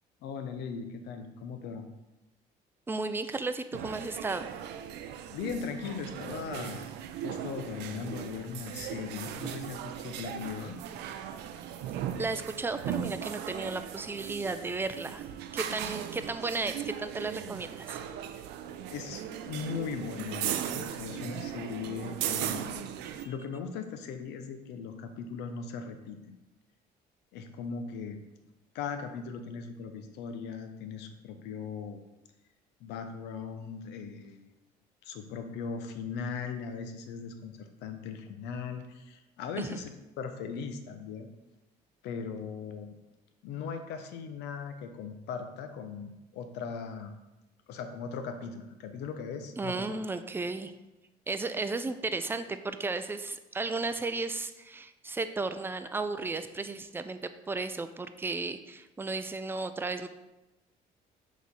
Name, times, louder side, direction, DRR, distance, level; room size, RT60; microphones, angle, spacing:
voice 1, 0.2-1.8 5.3-6.9 7.2-10.8 18.9-22.9 23.2-26.4 27.3-28.2 28.7-32.0 32.8-34.5 35.0-41.3 42.0-42.9 43.4-47.1 47.7-49.9, left 6 dB, 85° left, 7 dB, 0.7 m, -39 dB
voice 2, 2.9-4.5 12.2-15.2 15.5-18.0 23.0-23.1 39.6-39.8 49.6-50.7 51.3-60.1, right 3 dB, 15° right, 10 dB, 0.4 m, -34 dB
sound 1, 3.7-23.3, right 10 dB, 85° right, 0.5 m, -38 dB
6.3 x 3.1 x 5.4 m, 1.0 s
cardioid pair, 110°, 17 cm